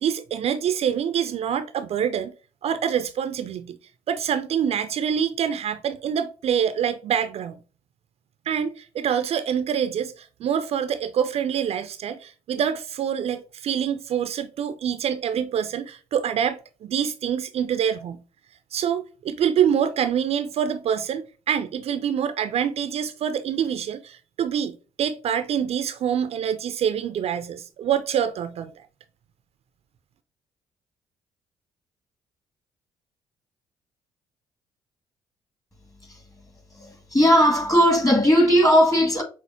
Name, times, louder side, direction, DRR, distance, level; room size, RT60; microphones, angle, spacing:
voice 1, 0.0-2.3 2.6-3.8 4.1-7.6 8.5-18.2 18.7-28.7, right 8 dB, 50° right, 0.4 m, -26 dB
voice 2, 36.7-39.2, equal, 25° left, 1.6 m, -18 dB
6.1 x 2.0 x 2.6 m
hypercardioid pair, 50°, 13 cm